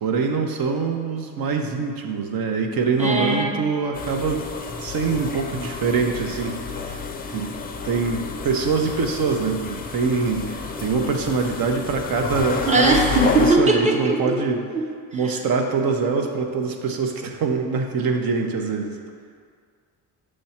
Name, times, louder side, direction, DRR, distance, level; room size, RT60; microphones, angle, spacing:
voice 1, 0.0-4.4 4.8-7.0 7.3-7.5 7.8-14.6 15.1-19.0, right 4 dB, 60° right, 4 dB, 0.8 m, -24 dB
voice 2, 3.0-3.6 12.7-14.4 14.7-15.2, right 2 dB, 20° right, 1 dB, 0.8 m, -20 dB
sound 1, 3.9-13.5, left 5 dB, 25° left, 0.4 m, -30 dB
6.8 x 3.3 x 5.7 m, 2.1 s
cardioid pair, 105°, 41 cm